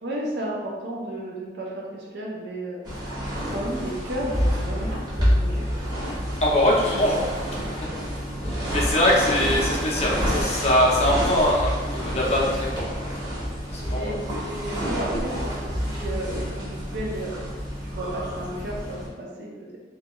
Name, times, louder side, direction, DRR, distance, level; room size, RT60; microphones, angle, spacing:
voice 1, 0.0-2.8 3.5-5.7 13.9-17.3 17.9-19.8, right 1 dB, 60° right, -2 dB, 0.5 m, -33 dB
sound 1, 2.8-19.1, equal, 20° right, 0.7 m, -28 dB
voice 2, 6.4-7.2 8.4-12.7 13.7-14.2, left 1 dB, 35° left, -4 dB, 0.4 m, -22 dB
2.2 x 2.2 x 2.9 m, 1.4 s
head